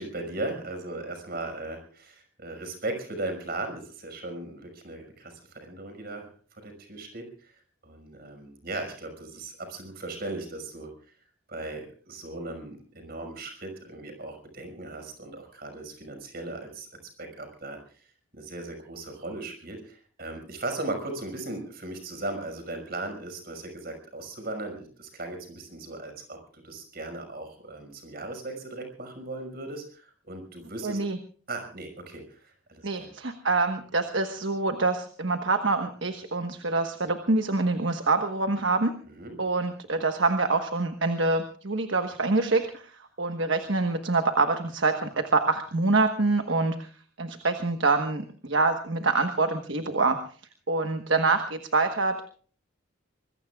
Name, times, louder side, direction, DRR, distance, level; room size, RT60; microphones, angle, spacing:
voice 1, 0.0-6.3 6.6-7.5 7.8-10.9 11.5-16.9 17.2-17.8 18.3-31.0 31.5-33.1 39.2-39.4, right 2 dB, 50° right, 6 dB, 5.7 m, -37 dB
voice 2, 30.8-31.2 32.8-38.9 39.4-46.9 47.2-50.2 50.7-52.2, right 3 dB, 65° right, 6 dB, 1.3 m, -26 dB
25.0 x 22.0 x 2.4 m, 0.43 s
head